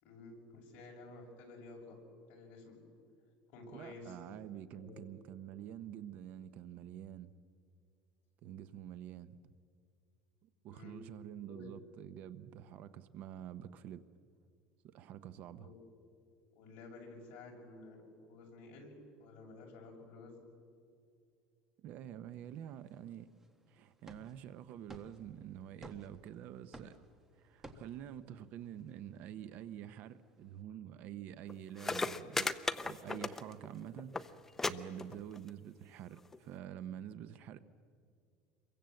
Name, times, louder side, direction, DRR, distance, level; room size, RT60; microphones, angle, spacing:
voice 1, 0.0-2.0 2.3-2.8 3.5-4.2 4.7-5.0 10.7-11.0 11.5-11.7 15.6-15.7 16.5-20.5, left 3 dB, 50° left, 6.6 m, -52 dB
voice 2, 3.7-7.3 8.4-9.4 10.4-14.0 14.8-15.7 21.8-23.3 23.7-27.0 27.4-37.6, right 10 dB, 45° right, 0.8 m, -48 dB
sound 1, 22.3-30.6 33.1-33.8, right 1 dB, 10° right, 1.4 m, -59 dB
sound 2, 31.5-31.6 31.8-33.7 34.0-34.3 34.6-34.7 35.0-35.5 36.3-36.4, left 3 dB, 10° left, 0.6 m, -35 dB
27.5 x 23.0 x 7.8 m
cardioid pair, 170°, 4 cm